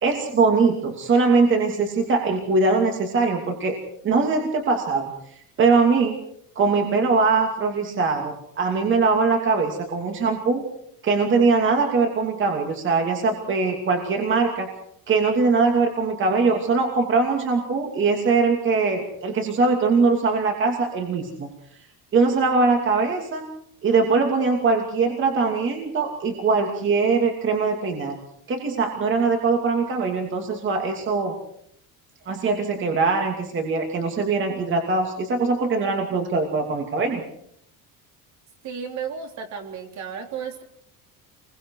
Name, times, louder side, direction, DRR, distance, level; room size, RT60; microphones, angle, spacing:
voice 1, 0.0-3.8 4.0-5.1 5.6-6.2 6.6-10.7 11.0-14.7 15.1-21.5 22.1-23.5 23.8-28.2 28.5-31.3 32.3-37.2, right 4 dB, 30° right, 3 dB, 2.7 m, -21 dB
voice 2, 38.6-40.6, right 7 dB, 50° right, 4 dB, 3.5 m, -33 dB
28.0 x 22.5 x 4.8 m, 0.69 s
cardioid pair, 170°, 37 cm